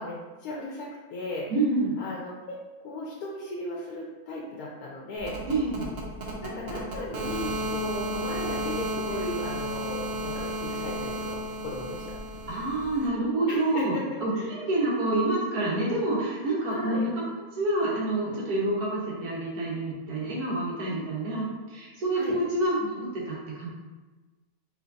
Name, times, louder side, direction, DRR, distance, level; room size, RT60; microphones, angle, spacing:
voice 1, 0.0-1.5 2.0-5.4 6.4-12.0 13.5-14.6 16.7-17.1 20.8-21.0 22.1-22.4, left 2 dB, 90° left, -4 dB, 1.2 m, -36 dB
voice 2, 1.5-2.0 5.4-5.9 12.5-13.9 14.2-17.2 17.5-23.7, right 2 dB, 85° right, -6 dB, 1.7 m, -28 dB
sound 1, 5.2-13.1, right 1 dB, 50° right, 0.8 m, -33 dB
5.0 x 3.1 x 2.6 m, 1.2 s
omnidirectional pair, 1.6 m